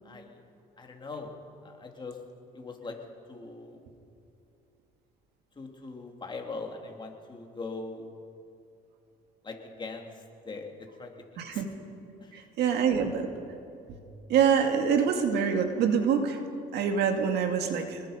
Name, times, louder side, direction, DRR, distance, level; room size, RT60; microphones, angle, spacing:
voice 1, 0.0-0.4 0.8-1.3 1.6-2.2 2.5-3.0 3.3-3.8 5.5-8.1 9.4-11.6 12.2-12.5, left 3 dB, 25° left, 2 dB, 3.0 m, -41 dB
voice 2, 12.3-13.3 14.3-16.4 16.7-18.0, right 7 dB, 75° right, 4 dB, 2.3 m, -25 dB
26.0 x 20.5 x 5.2 m, 2.6 s
cardioid pair, 110°, 17 cm